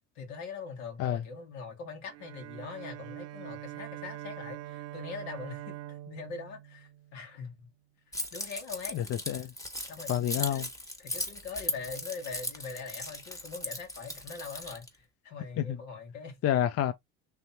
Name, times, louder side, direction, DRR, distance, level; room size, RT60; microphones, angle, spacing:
voice 1, 0.2-7.7 8.1-9.0 9.9-10.6 11.0-16.6, left 5 dB, 80° left, 2.0 m, -42 dB
Bowed string instrument, 2.1-7.5, right 15 dB, 45° right, 0.5 m, -44 dB
Keys jangling, 8.1-14.9, left 1 dB, 10° left, 1.3 m, -38 dB
voice 2, 8.9-9.5 10.1-10.7 15.6-15.8 16.4-16.9, left 11 dB, 45° left, 0.5 m, -28 dB
3.4 x 3.0 x 4.2 m
supercardioid pair, 100°, 35 cm